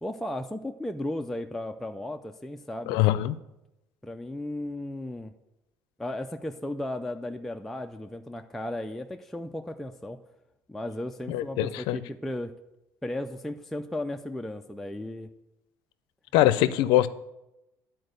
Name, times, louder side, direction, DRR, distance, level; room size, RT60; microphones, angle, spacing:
voice 1, 0.0-3.0 4.0-5.3 6.0-10.2 10.7-12.5 13.0-15.3, left 1 dB, 5° left, 4 dB, 0.3 m, -35 dB
voice 2, 2.9-3.4 11.3-12.0 16.3-17.1, left 14 dB, 85° left, 15 dB, 0.4 m, -23 dB
9.8 x 4.4 x 6.5 m, 0.92 s
cardioid pair, 145°, 8 cm